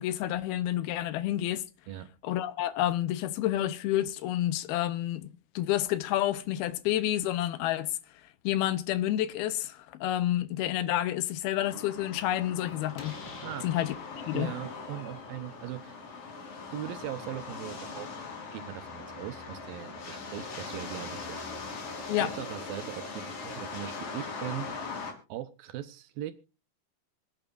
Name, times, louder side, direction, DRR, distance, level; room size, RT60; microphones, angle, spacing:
voice 1, 0.0-1.6 2.2-5.3 5.6-8.0 8.4-13.2 13.6-14.5 22.1-22.3, left 13 dB, 80° left, 2.6 m, -29 dB
sound 1, 11.6-25.1, left 4 dB, 60° left, 4.6 m, -41 dB
Slam, 12.1-20.7, left 3 dB, 40° left, 2.0 m, -53 dB
voice 2, 13.4-13.8 14.3-16.2 16.7-18.3 18.5-21.4 22.2-24.7 25.3-26.3, right 12 dB, 75° right, 2.5 m, -40 dB
25.5 x 8.9 x 2.5 m
omnidirectional pair, 4.5 m